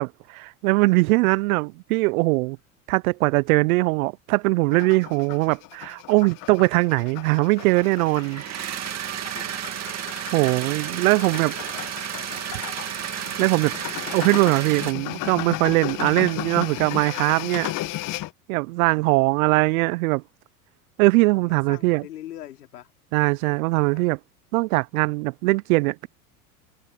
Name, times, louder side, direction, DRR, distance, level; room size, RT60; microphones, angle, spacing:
voice 1, 0.0-2.6 2.9-8.4 10.3-11.5 13.1-13.8 14.1-17.7 18.5-20.2 21.0-22.0 23.1-24.2 24.5-26.1, right 24 dB, 70° right, 0.7 m, -21 dB
Scratching cello in electroacoustic music, 4.7-18.3, left 16 dB, 45° left, 1.3 m, -35 dB
sound 1, 7.6-14.9, right 11 dB, 35° right, 2.2 m, -32 dB
voice 2, 10.9-12.5 18.8-19.4 21.3-22.9 23.7-24.1, left 12 dB, 90° left, 3.9 m, -44 dB
hypercardioid pair, 100°, 45 cm